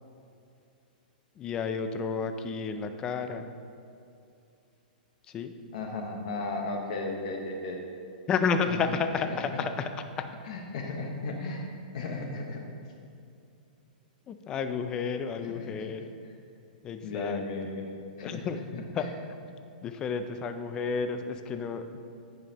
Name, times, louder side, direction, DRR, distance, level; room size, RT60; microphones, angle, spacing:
voice 1, 1.4-3.5 5.3-5.5 8.3-9.9 10.2-10.3 14.3-16.1 16.8-17.4 18.2-18.6 18.9-19.1 19.8-22.0, left 5 dB, 15° left, 8 dB, 0.3 m, -31 dB
voice 2, 5.7-7.8 8.7-8.9 9.5-9.6 10.4-12.6 15.4-15.9 17.0-19.1, left 2 dB, 50° left, 1 dB, 1.0 m, -35 dB
15.0 x 5.3 x 2.9 m, 2.5 s
hypercardioid pair, 170°, 5 cm